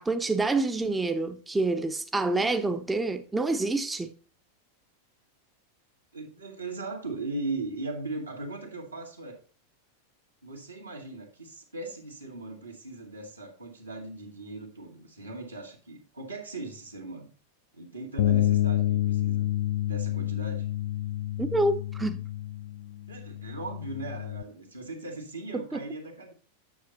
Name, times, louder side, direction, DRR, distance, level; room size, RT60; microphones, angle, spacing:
voice 1, 0.0-4.1 21.4-22.2 25.5-25.8, right 2 dB, 10° right, 0.6 m, -27 dB
voice 2, 6.1-9.4 10.4-17.3 17.7-19.5 19.9-20.7 23.1-26.3, right 2 dB, 85° right, 2.1 m, -38 dB
Bass guitar, 18.2-24.4, left 13 dB, 50° left, 0.5 m, -28 dB
9.3 x 6.6 x 4.1 m
figure-of-eight pair, 90°, 0 cm